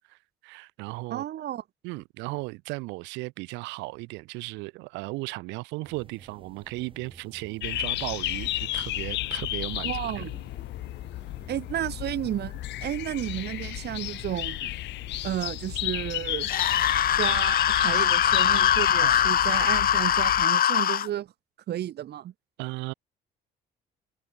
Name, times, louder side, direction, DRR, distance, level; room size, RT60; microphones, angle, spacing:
voice 1, 0.0-1.2 1.8-10.3 19.0-19.2 22.6-22.9, right 24 dB, 90° right, 1.6 m, -36 dB
voice 2, 1.1-1.6 9.8-10.4 11.5-14.7 15.2-16.5 17.1-21.3 21.7-22.3, right 12 dB, 65° right, 1.7 m, -32 dB
sound 1, 5.8-20.1, right 4 dB, 30° right, 7.0 m, -53 dB
sound 2, 7.6-20.5, left 16 dB, 80° left, 1.8 m, -33 dB
sound 3, 16.4-21.1, left 9 dB, 55° left, 1.2 m, -22 dB
supercardioid pair, 70°, 18 cm